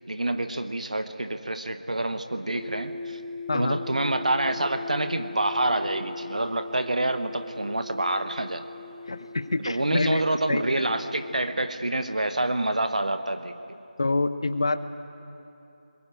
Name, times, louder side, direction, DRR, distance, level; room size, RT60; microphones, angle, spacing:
voice 1, 0.1-3.2 3.5-8.6 9.6-13.6, right 2 dB, 55° right, 9 dB, 1.2 m, -27 dB
sound 1, 2.5-11.5, left 4 dB, ahead, 0.6 m, -41 dB
voice 2, 3.5-3.8 9.0-10.2 10.5-10.6 14.0-14.8, left 3 dB, 35° left, 13 dB, 0.9 m, -26 dB
21.5 x 21.0 x 9.2 m, 3.0 s
figure-of-eight pair, 165°, 5 cm